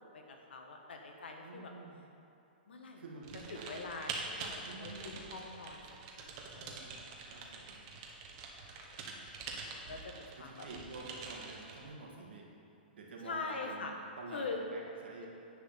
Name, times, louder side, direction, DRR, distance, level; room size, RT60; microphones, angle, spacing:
voice 1, 0.0-1.7 2.7-3.0 3.5-5.8 6.2-6.8 8.6-9.0 9.7-10.7 13.2-13.9 14.3-14.6 15.2-15.3, left 4 dB, 85° left, 2 dB, 1.5 m, -44 dB
voice 2, 1.4-2.0 3.0-3.8 4.6-5.2 6.5-7.9 10.4-12.5 12.9-14.4 14.7-15.3, right 3 dB, 80° right, -2 dB, 2.3 m, -49 dB
Typing, 3.2-11.8, right 4 dB, 40° right, 1.4 m, -46 dB
10.5 x 5.0 x 7.2 m, 2.8 s
hypercardioid pair, 145°, 6 cm